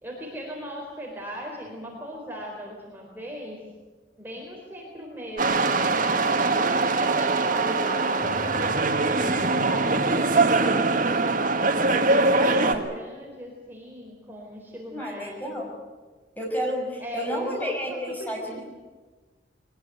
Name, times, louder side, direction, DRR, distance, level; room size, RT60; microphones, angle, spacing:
voice 1, 0.0-3.6 4.2-5.7 6.4-8.7 9.1-10.9 11.5-15.5 17.0-18.6, equal, 10° right, -1 dB, 4.2 m, -38 dB
sound 1, 5.4-12.7, right 3 dB, 50° right, 1.7 m, -22 dB
sound 2, 8.2-13.1, equal, 75° left, 2.9 m, -43 dB
voice 2, 12.4-12.8 14.9-15.7 16.4-18.6, equal, 10° left, 0 dB, 5.8 m, -31 dB
22.0 x 20.0 x 9.4 m, 1.3 s
head